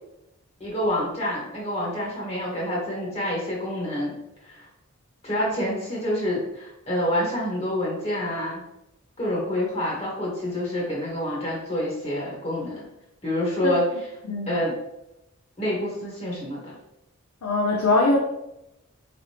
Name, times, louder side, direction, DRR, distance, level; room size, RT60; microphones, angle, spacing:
voice 1, 0.6-4.1 4.4-4.6 5.2-8.6 9.2-12.8 13.2-13.9 14.5-14.8 15.6-16.7, equal, 30° left, -4 dB, 1.0 m, -27 dB
voice 2, 17.4-18.2, left 2 dB, 85° left, -1 dB, 0.6 m, -21 dB
3.9 x 3.3 x 2.8 m, 0.86 s
head